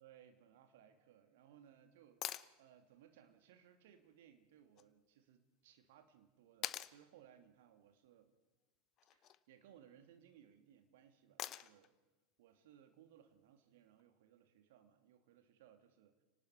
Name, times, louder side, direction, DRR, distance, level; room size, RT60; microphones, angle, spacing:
voice 1, 0.0-8.3 9.1-11.9 12.4-16.2, right 9 dB, 60° right, 7 dB, 2.6 m, -65 dB
sound 1, 2.2-2.5 4.8-4.9 6.6-7.0 9.0-9.4 11.4-11.9 14.0-14.1, left 12 dB, 40° left, 0.8 m, -44 dB
30.0 x 19.0 x 4.7 m, 1.2 s
figure-of-eight pair, 80°, 0 cm